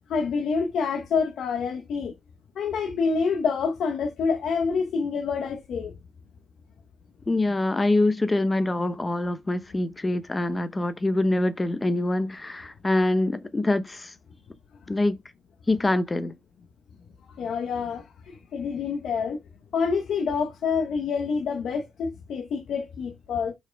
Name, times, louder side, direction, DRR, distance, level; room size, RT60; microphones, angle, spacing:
voice 1, 0.1-2.1 2.6-5.9 17.4-19.4 19.7-23.5, left 5 dB, 70° left, 1.1 m, -27 dB
voice 2, 7.3-14.1 14.9-15.2 15.7-16.3, left 2 dB, 20° left, 0.8 m, -25 dB
5.7 x 4.8 x 4.6 m
cardioid pair, 130°, 0 cm